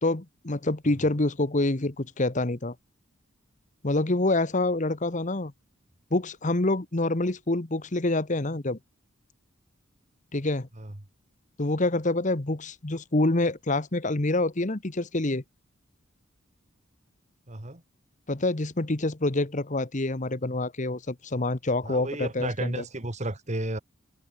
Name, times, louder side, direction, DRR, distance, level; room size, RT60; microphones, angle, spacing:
voice 1, 0.0-2.7 3.8-5.5 6.1-8.8 10.3-10.7 11.6-15.4 18.3-22.8, left 2 dB, 40° left, 1.2 m, -26 dB
voice 2, 17.5-17.8 21.8-23.8, right 2 dB, 35° right, 1.7 m, -33 dB
head